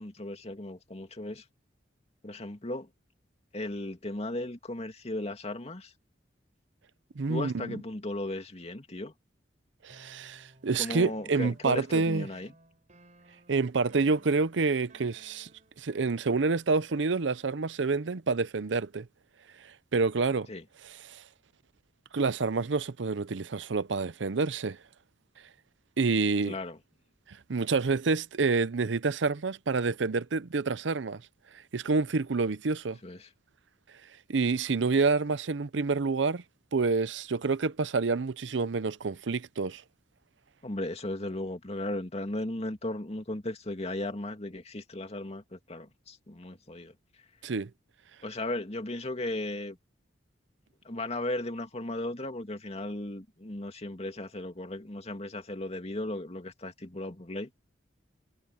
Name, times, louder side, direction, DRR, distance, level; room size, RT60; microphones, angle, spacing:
voice 1, 0.0-1.4 2.2-2.9 3.5-5.9 7.3-9.1 10.8-12.5 20.5-20.6 26.4-26.8 33.0-33.3 40.6-46.9 48.2-49.8 50.8-57.5, left 1 dB, 35° left, 2.5 m, -36 dB
voice 2, 7.2-7.8 9.8-12.3 13.5-15.5 15.8-19.1 19.9-20.5 20.8-21.2 22.1-24.8 26.0-26.6 27.3-31.2 31.7-33.0 34.3-36.4 36.7-39.8 47.4-47.7, right 4 dB, 80° right, 0.6 m, -28 dB
sound 1, 9.9-17.8, right 2 dB, 45° right, 4.8 m, -59 dB
head